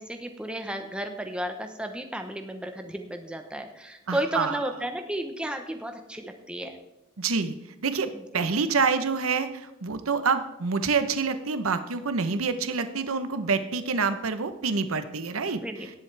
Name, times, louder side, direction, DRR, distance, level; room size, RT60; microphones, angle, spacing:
voice 1, 0.0-6.8 8.3-8.5 15.6-15.9, right 1 dB, 5° right, 5 dB, 0.9 m, -33 dB
voice 2, 4.1-4.6 7.2-7.6 7.8-15.9, right 4 dB, 85° right, 10 dB, 0.9 m, -27 dB
18.0 x 7.3 x 3.4 m, 0.91 s
head